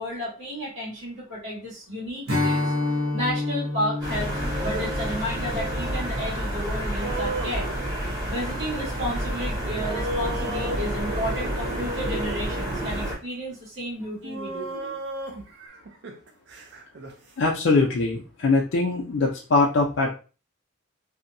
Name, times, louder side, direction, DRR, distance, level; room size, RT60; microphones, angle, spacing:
voice 1, 0.0-2.7 3.1-4.3 4.6-7.7 8.3-14.9, equal, 70° right, -7 dB, 1.4 m, -32 dB
Strum, 2.3-7.7, left 2 dB, 85° right, 0.8 m, -30 dB
sound 1, 4.0-13.2, right 1 dB, 20° right, 0.8 m, -29 dB
sound 2, 4.1-4.9 7.0-8.2 9.8-11.9 13.1-13.2 14.2-17.1, right 2 dB, 55° right, 0.4 m, -35 dB
voice 2, 17.4-20.1, left 3 dB, 60° left, -1 dB, 0.4 m, -22 dB
2.7 x 2.1 x 2.5 m, 0.34 s
head